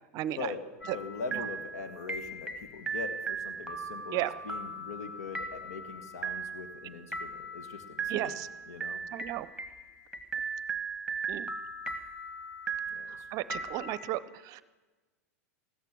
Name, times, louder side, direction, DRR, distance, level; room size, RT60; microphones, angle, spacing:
voice 1, 0.1-0.5 0.9-1.0 1.3-1.4 4.1-4.3 8.1-8.5 9.1-9.5 11.3-11.5 13.1-14.6, right 14 dB, 45° right, 17 dB, 0.6 m, -34 dB
sound 1, 0.8-14.0, right 4 dB, 10° right, 1.4 m, -38 dB
voice 2, 0.9-8.4 8.7-9.0 12.9-13.3, left 4 dB, 70° left, 8 dB, 1.6 m, -42 dB
15.5 x 13.5 x 6.2 m, 1.3 s
hypercardioid pair, 100°, 9 cm